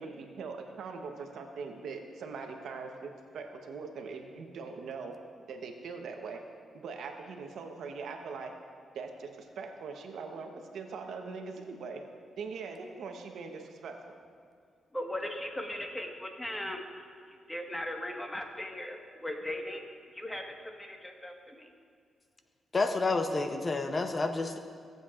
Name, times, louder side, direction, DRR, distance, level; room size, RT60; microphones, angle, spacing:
voice 1, 0.0-5.2 5.5-6.5 6.7-8.6 8.9-12.0 12.4-14.0 23.3-23.4, right 4 dB, 80° right, 4 dB, 0.9 m, -41 dB
voice 2, 14.9-16.8 17.5-19.9 20.1-21.7, left 1 dB, 15° left, 2 dB, 1.4 m, -38 dB
voice 3, 22.7-24.6, left 3 dB, 35° left, 7 dB, 0.7 m, -29 dB
17.5 x 8.0 x 2.5 m, 2.2 s
cardioid pair, 75°, 0 cm